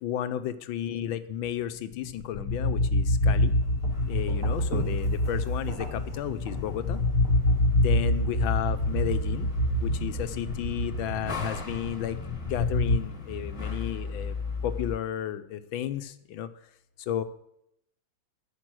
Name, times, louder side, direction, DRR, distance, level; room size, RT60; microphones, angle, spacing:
voice 1, 0.0-3.5 4.0-7.0 7.7-9.5 9.8-12.2 12.5-14.3 14.6-16.5 17.1-17.2, left 10 dB, 80° left, 10 dB, 1.5 m, -33 dB
sound 1, 1.9-13.0, left 2 dB, 45° left, 1.4 m, -26 dB
sound 2, 2.8-15.0, left 4 dB, 15° left, 1.6 m, -37 dB
sound 3, 3.3-10.4, right 2 dB, 40° right, 2.8 m, -42 dB
14.0 x 6.3 x 6.2 m, 0.77 s
omnidirectional pair, 2.2 m